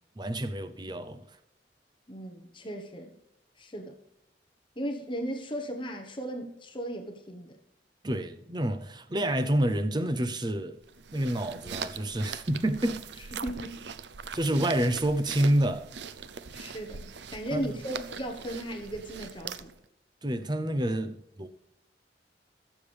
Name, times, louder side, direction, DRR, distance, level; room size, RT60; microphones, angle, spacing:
voice 1, 0.2-1.3 8.0-10.8 11.1-13.3 14.3-15.9 17.5-17.7 20.2-21.5, right 1 dB, 25° right, 0.7 m, -28 dB
voice 2, 2.1-3.2 3.6-3.9 4.7-7.6 13.2-13.8 16.5-19.7, right 1 dB, 30° left, 1.2 m, -36 dB
sound 1, 10.8-19.8, right 6 dB, 75° right, 0.6 m, -41 dB
21.0 x 7.2 x 3.4 m
head